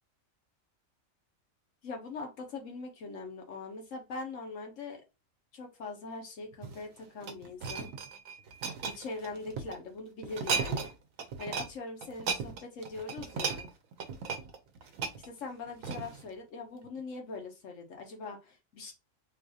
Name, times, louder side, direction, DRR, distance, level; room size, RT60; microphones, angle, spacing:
voice 1, 1.8-5.0 5.5-7.9 8.8-10.9 11.4-13.7 15.4-18.9, left 3 dB, 75° left, 2 dB, 1.2 m, -41 dB
sound 1, 6.5-9.8 10.2-10.9 11.2-11.7 12.0-16.3 16.8-17.0, right 5 dB, 90° right, 1.0 m, -36 dB
3.9 x 2.4 x 2.7 m, 0.27 s
omnidirectional pair, 1.4 m